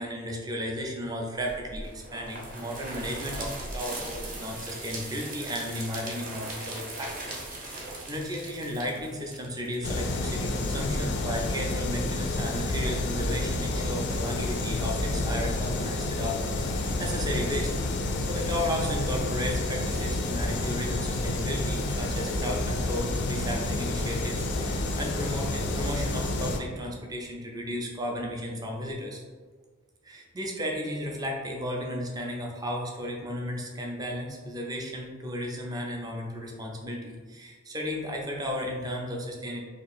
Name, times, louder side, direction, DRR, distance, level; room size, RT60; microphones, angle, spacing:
voice 1, 0.0-7.1 7.4-17.7 18.2-29.2 30.0-39.6, equal, 20° right, 0 dB, 0.5 m, -34 dB
sound 1, 1.4-10.2, right 2 dB, 45° right, 0.8 m, -39 dB
sound 2, 9.8-26.6, left 2 dB, 55° left, 0.4 m, -29 dB
2.9 x 2.4 x 4.2 m, 1.5 s
head